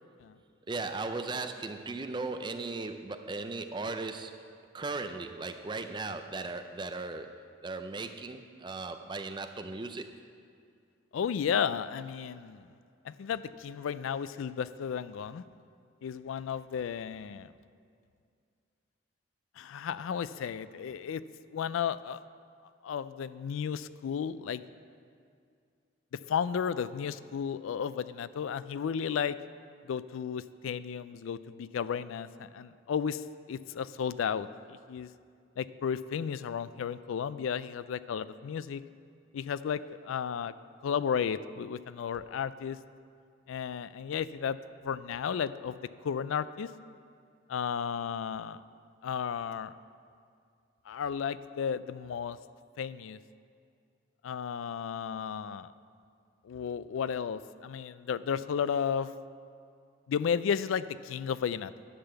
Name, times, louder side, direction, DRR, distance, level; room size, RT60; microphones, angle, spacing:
voice 1, 0.7-4.4 4.7-10.1, right 3 dB, 20° right, 8 dB, 0.4 m, -37 dB
voice 2, 11.1-12.6 13.0-15.4 16.0-17.5 19.6-21.2 21.5-22.2 22.8-24.6 26.3-29.4 29.8-35.1 35.6-38.8 39.3-40.5 40.8-42.8 43.5-44.6 44.8-45.8 46.0-46.7 47.5-48.6 49.0-49.7 50.9-52.4 52.8-53.2 54.2-55.7 56.4-59.1 60.1-61.7, left 7 dB, 75° left, 15 dB, 0.3 m, -33 dB
10.5 x 5.6 x 6.9 m, 2.3 s
head